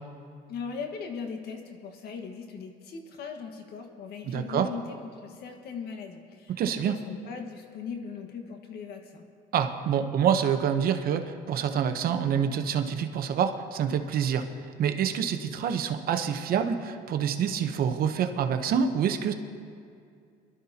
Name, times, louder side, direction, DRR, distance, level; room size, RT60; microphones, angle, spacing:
voice 1, 0.5-9.2, left 5 dB, 70° left, 4 dB, 1.6 m, -39 dB
voice 2, 4.3-4.7 6.6-6.9 9.5-14.5 14.8-19.3, right 8 dB, 60° right, 7 dB, 0.9 m, -27 dB
22.0 x 12.5 x 2.9 m, 2.3 s
cardioid pair, 110°, 17 cm